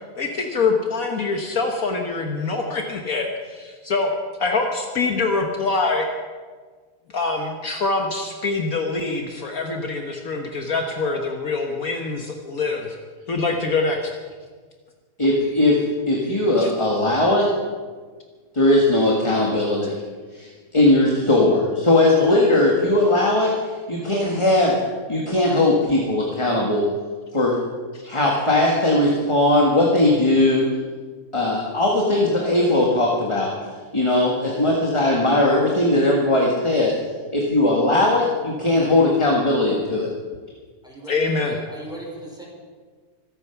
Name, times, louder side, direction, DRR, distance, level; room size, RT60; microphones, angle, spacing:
voice 1, 0.0-4.1 4.4-6.1 7.1-12.9 13.3-14.1 16.6-16.7 27.9-28.0 41.1-41.6, left 3 dB, 60° left, 2 dB, 1.6 m, -24 dB
voice 2, 15.2-17.5 18.5-19.9 20.3-23.5 23.9-24.8 25.1-26.9 27.3-27.6 28.0-30.7 31.3-33.5 33.9-36.9 37.3-40.1, left 2 dB, 20° left, -2 dB, 1.7 m, -19 dB
voice 3, 40.8-42.4, right 1 dB, ahead, -4 dB, 5.1 m, -37 dB
24.5 x 8.9 x 5.9 m, 1.5 s
omnidirectional pair, 1.7 m